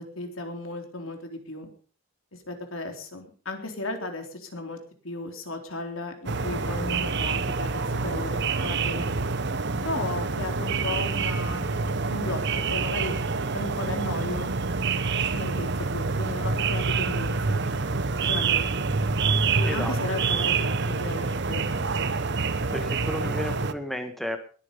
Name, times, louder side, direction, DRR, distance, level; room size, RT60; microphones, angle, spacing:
voice 1, 0.0-1.7 2.3-4.8 5.0-9.1 9.8-13.1 13.5-14.5 15.3-17.9 18.3-18.9 19.6-21.9, left 2 dB, 85° left, 5 dB, 3.8 m, -35 dB
sound 1, 6.3-23.7, right 4 dB, 60° right, 1.0 m, -27 dB
voice 2, 19.7-20.0 22.7-24.4, left 1 dB, ahead, 6 dB, 1.7 m, -32 dB
21.0 x 9.8 x 5.4 m, 0.42 s
head